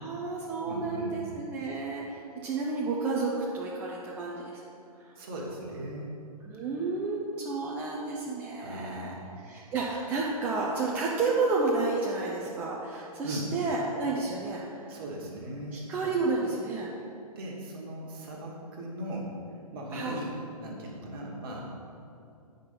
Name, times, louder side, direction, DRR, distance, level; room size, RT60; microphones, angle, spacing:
voice 1, 0.0-4.6 5.0-5.1 6.4-15.0 15.7-16.9 19.9-20.2, right 3 dB, 10° right, -4 dB, 0.4 m, -31 dB
voice 2, 0.6-1.2 5.2-6.1 8.6-9.3 13.2-13.5 14.9-15.8 17.3-19.3 19.7-20.3 20.6-21.7, right 1 dB, 35° right, -1 dB, 1.4 m, -38 dB
8.8 x 5.3 x 4.3 m, 2.6 s
figure-of-eight pair, 125°, 20 cm